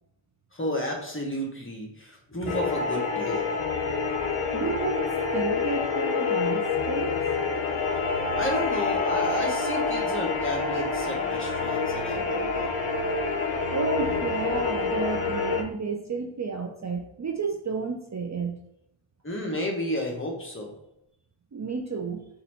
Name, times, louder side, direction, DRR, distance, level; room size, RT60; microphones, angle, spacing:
voice 1, 0.5-3.5 8.2-12.7 19.2-20.7, left 1 dB, 25° left, -1 dB, 1.1 m, -32 dB
sound 1, 2.5-15.6, left 4 dB, 75° left, 0.7 m, -27 dB
voice 2, 4.5-7.3 13.7-18.6 21.5-22.3, right 4 dB, 35° right, 3 dB, 0.5 m, -31 dB
4.1 x 2.6 x 4.3 m, 0.80 s
wide cardioid pair, 60°, 49 cm